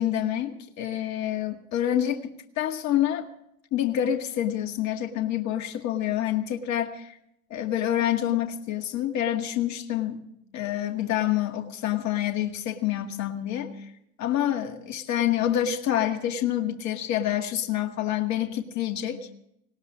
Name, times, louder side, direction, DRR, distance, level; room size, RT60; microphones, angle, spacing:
voice 1, 0.0-3.3 3.7-7.1 7.5-10.2 10.5-13.7 14.2-19.2, left 11 dB, 40° left, 4 dB, 1.9 m, -27 dB
20.0 x 18.0 x 3.6 m, 0.75 s
hypercardioid pair, 100°, 44 cm